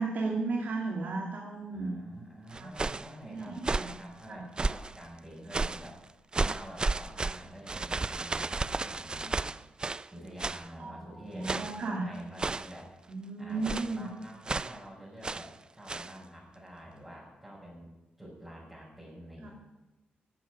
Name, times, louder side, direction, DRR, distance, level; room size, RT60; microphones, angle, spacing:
voice 1, 0.0-2.0 2.5-2.7 3.2-3.9 4.3-4.4 5.5-5.6 10.8-11.0 11.3-12.1 13.1-14.0 19.4-19.5, right 3 dB, 60° right, -1 dB, 2.5 m, -34 dB
voice 2, 1.7-9.5 10.1-12.9 13.4-17.9 18.2-19.5, equal, 10° right, -6 dB, 5.6 m, -48 dB
sound 1, 2.5-3.1 3.6-4.0 4.6-5.0 5.5-5.9 6.3-10.1 10.4-10.7 11.4-11.8 12.4-12.8 13.6-14.0 14.5-14.8 15.2-15.5 15.9-16.1, right 3 dB, 25° right, 0.4 m, -33 dB
15.0 x 7.4 x 9.5 m, 1.0 s
cardioid pair, 90°, 3 cm